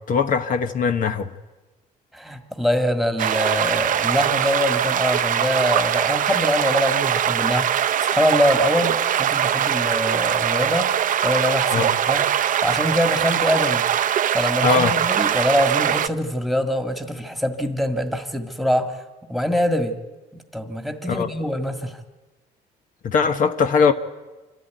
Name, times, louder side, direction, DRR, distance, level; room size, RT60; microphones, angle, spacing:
voice 1, 0.1-1.3 11.7-11.9 14.6-14.9 21.1-21.3 23.0-23.9, left 5 dB, 50° left, 1.1 m, -20 dB
voice 2, 2.1-10.9 11.2-12.3 12.6-13.8 14.3-19.0 19.3-19.9 20.3-22.0, equal, ahead, 1.8 m, -24 dB
sound 1, 3.2-16.1, right 10 dB, 50° right, 0.7 m, -22 dB
26.0 x 13.0 x 9.4 m
cardioid pair, 110°, 17 cm